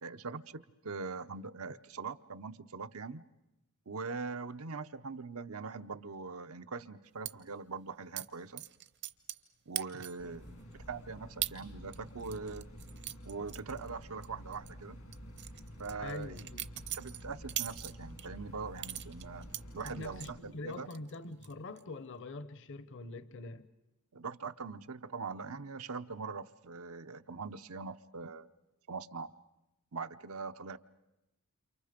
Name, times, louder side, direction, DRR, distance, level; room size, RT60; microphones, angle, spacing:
voice 1, 0.0-3.2 3.9-8.6 9.7-12.7 13.3-15.0 15.8-16.5 16.9-19.5 19.7-20.9 24.1-28.5 28.9-29.3 29.9-30.8, right 4 dB, 90° right, 0.8 m, -42 dB
sound 1, 7.3-7.4 8.2-8.3 8.6-9.5 9.8-10.3 10.7-10.8 11.4-11.6 11.9-14.3 14.5-14.7 15.1-18.3 18.8-20.3 20.7-21.2 21.4-21.8, right 13 dB, 55° right, 0.8 m, -40 dB
sound 2, 10.2-20.4, equal, 85° left, 4.4 m, -50 dB
voice 2, 16.0-16.7 19.8-23.7, left 2 dB, 60° left, 0.9 m, -44 dB
29.5 x 28.0 x 5.1 m
head